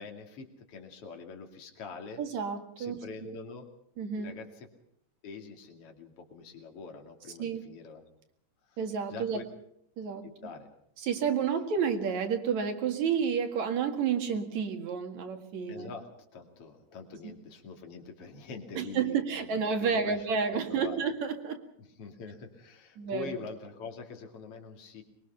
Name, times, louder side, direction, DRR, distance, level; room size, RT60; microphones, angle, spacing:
voice 1, 0.0-2.2 2.8-3.7 4.2-4.7 5.2-8.0 8.7-8.8 9.1-9.4 10.2-10.7 15.7-16.1 16.3-20.2 20.5-21.0 22.0-25.0, left 5 dB, 50° left, 3 dB, 3.4 m, -44 dB
voice 2, 2.2-3.4 4.0-4.3 7.4-7.6 8.8-9.5 10.0-10.3 11.0-15.9 17.2-17.3 18.7-21.7 23.0-23.4, right 6 dB, 70° right, 5 dB, 3.3 m, -30 dB
24.5 x 22.0 x 5.8 m, 0.70 s
omnidirectional pair, 3.4 m